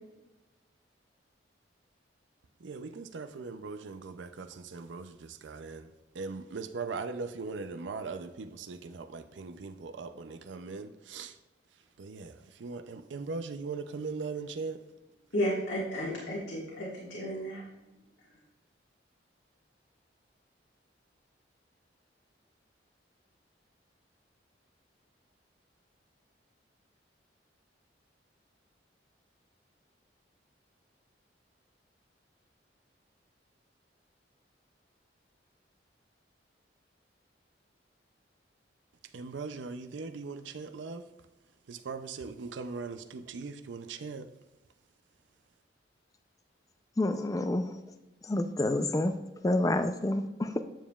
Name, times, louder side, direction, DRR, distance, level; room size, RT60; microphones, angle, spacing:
voice 1, 2.6-11.4 12.0-14.8 39.1-41.1 41.7-44.3, right 4 dB, 80° right, 0.5 m, -40 dB
voice 2, 15.3-17.6 18.2-18.3, equal, 80° left, 1.6 m, -33 dB
voice 3, 47.0-47.7 48.2-49.1 49.4-50.6, left 1 dB, 20° left, 0.4 m, -28 dB
9.0 x 7.1 x 2.3 m
head